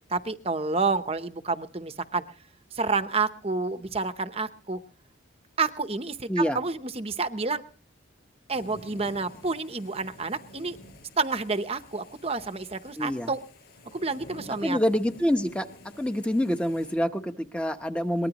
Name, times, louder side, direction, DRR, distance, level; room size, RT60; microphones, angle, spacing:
voice 1, 0.1-2.2 2.7-4.8 5.6-7.6 8.5-10.8 11.2-13.4 13.9-14.8, right 4 dB, 30° right, 10 dB, 0.8 m, -29 dB
voice 2, 6.3-6.6 13.0-13.3 14.6-15.7 16.0-18.3, equal, 5° left, 7 dB, 0.9 m, -26 dB
sound 1, 8.5-17.0, left 1 dB, 55° left, 7.4 m, -50 dB
23.0 x 20.0 x 3.0 m, 0.41 s
head